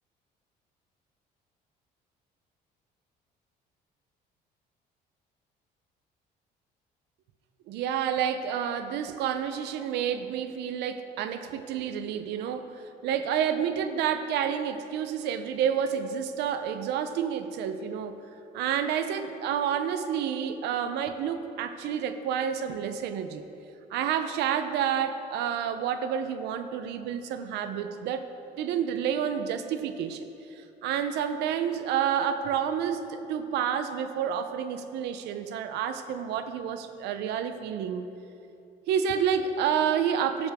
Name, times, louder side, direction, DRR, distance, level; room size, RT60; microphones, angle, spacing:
voice 1, 7.7-18.2 18.5-23.4 23.9-28.2 28.6-38.1 38.9-40.5, right 8 dB, 85° right, 9 dB, 0.7 m, -29 dB
12.5 x 11.5 x 3.6 m, 2.8 s
cardioid pair, 110°, 17 cm